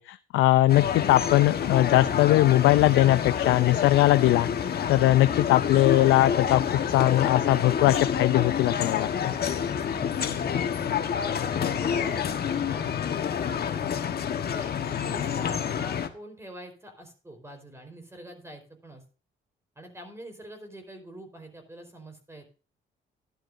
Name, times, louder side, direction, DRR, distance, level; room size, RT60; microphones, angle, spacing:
voice 1, 0.0-4.5 4.9-9.3, left 16 dB, 90° left, 12 dB, 0.5 m, -21 dB
sound 1, 0.7-16.1, left 8 dB, 50° left, 1.3 m, -28 dB
voice 2, 9.9-10.9 11.5-14.0 14.5-19.0 19.8-22.4, right 1 dB, 15° right, 5 dB, 4.3 m, -45 dB
13.0 x 11.5 x 2.6 m, 0.36 s
cardioid pair, 90°, 20 cm